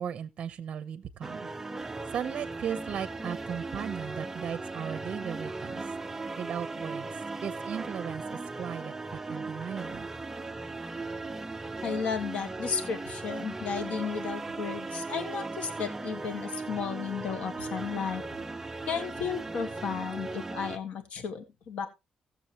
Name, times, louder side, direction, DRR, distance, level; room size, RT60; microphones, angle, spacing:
voice 1, 0.0-1.5 2.1-5.9 6.4-7.1 7.4-10.1, right 8 dB, 60° right, 0.7 m, -36 dB
sound 1, 1.2-20.8, right 3 dB, 20° right, 0.6 m, -37 dB
voice 2, 11.8-18.2 18.9-21.9, left 6 dB, 75° left, 1.8 m, -34 dB
16.5 x 7.1 x 2.9 m
cardioid pair, 105°, 2 cm